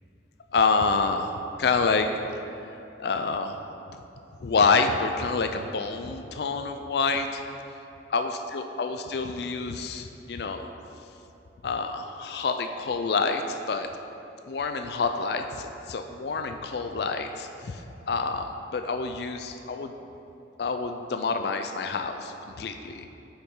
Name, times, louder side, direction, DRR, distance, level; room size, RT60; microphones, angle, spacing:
voice 1, 0.5-2.1 3.0-3.6 4.4-7.4 8.1-10.7 11.6-13.9 14.4-19.9 20.6-23.1, left 4 dB, 60° left, 6 dB, 0.4 m, -27 dB
9.3 x 7.1 x 3.8 m, 2.9 s
head